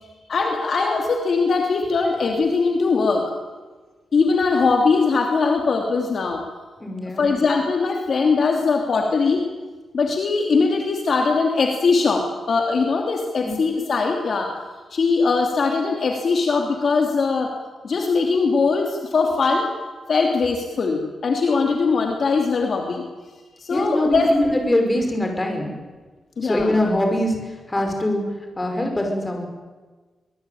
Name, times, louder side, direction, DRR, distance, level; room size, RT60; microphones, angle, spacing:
voice 1, 0.3-3.2 4.1-6.4 7.2-9.4 9.9-14.5 14.9-17.5 17.8-19.7 20.1-23.0 23.6-24.3 26.4-26.8, left 4 dB, 45° left, 2 dB, 2.9 m, -21 dB
voice 2, 6.8-7.3 13.4-13.6 23.7-25.7 26.4-27.4 27.7-28.2 28.6-29.4, left 1 dB, 15° left, 3 dB, 5.2 m, -22 dB
24.5 x 20.0 x 9.3 m, 1.3 s
wide cardioid pair, 170°, 0 cm